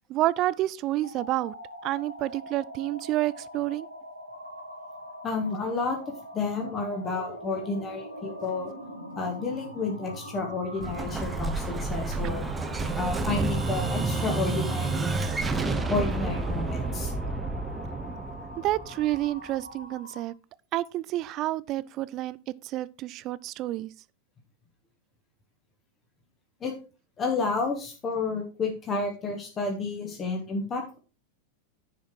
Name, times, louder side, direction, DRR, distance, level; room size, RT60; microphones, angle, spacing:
voice 1, 0.1-1.5 1.8-3.9 18.6-20.3 20.7-22.4 22.6-23.9, right 15 dB, 35° right, 0.4 m, -29 dB
sound 1, 1.0-20.3, equal, 85° left, 1.7 m, -42 dB
voice 2, 5.2-8.7 9.2-12.5 12.9-15.2 15.9-17.1 26.6-26.7 27.2-31.0, left 3 dB, 25° left, 1.6 m, -31 dB
Explosion, 10.8-19.5, right 3 dB, 15° right, 1.0 m, -30 dB
10.5 x 5.0 x 4.6 m
figure-of-eight pair, 90°, 0 cm